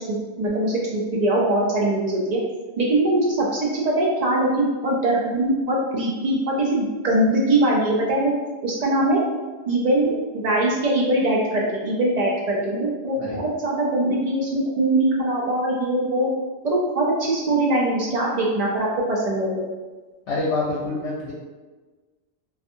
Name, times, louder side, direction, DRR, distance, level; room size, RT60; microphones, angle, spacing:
voice 1, 0.1-2.4 2.8-8.3 8.6-9.2 9.7-16.3 16.6-19.7, right 1 dB, 60° right, -3 dB, 0.4 m, -22 dB
voice 2, 20.3-21.3, left 2 dB, 80° left, -4 dB, 0.9 m, -26 dB
2.5 x 2.4 x 2.6 m, 1.3 s
omnidirectional pair, 1.2 m